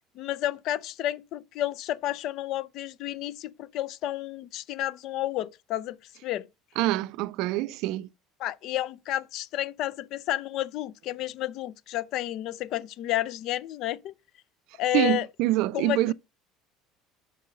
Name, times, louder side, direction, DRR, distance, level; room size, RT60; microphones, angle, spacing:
voice 1, 0.2-6.0 6.2-6.5 8.4-14.1 14.8-15.3 15.7-16.1, left 13 dB, 60° left, 0.5 m, -31 dB
voice 2, 6.8-8.1 14.9-16.1, right 16 dB, 70° right, 0.4 m, -25 dB
5.4 x 5.4 x 5.1 m
supercardioid pair, 85°, 0 cm